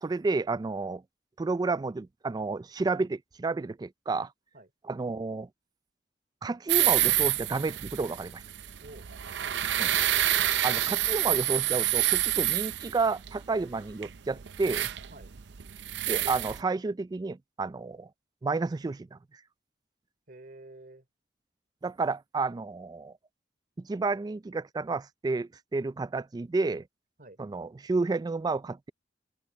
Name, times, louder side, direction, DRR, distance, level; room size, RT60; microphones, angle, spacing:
voice 1, 0.0-1.0 1.4-4.3 4.8-5.5 6.4-8.4 9.8-9.9 10.6-14.9 16.1-18.1 18.4-19.2 21.8-23.1 23.8-26.8 27.4-28.9, right 3 dB, 20° right, 0.3 m, -31 dB
sound 1, 6.7-16.6, right 13 dB, 75° right, 0.6 m, -28 dB
voice 2, 9.4-9.8 15.1-15.3 20.3-21.0 27.2-27.4, right 2 dB, 50° right, 3.2 m, -50 dB
head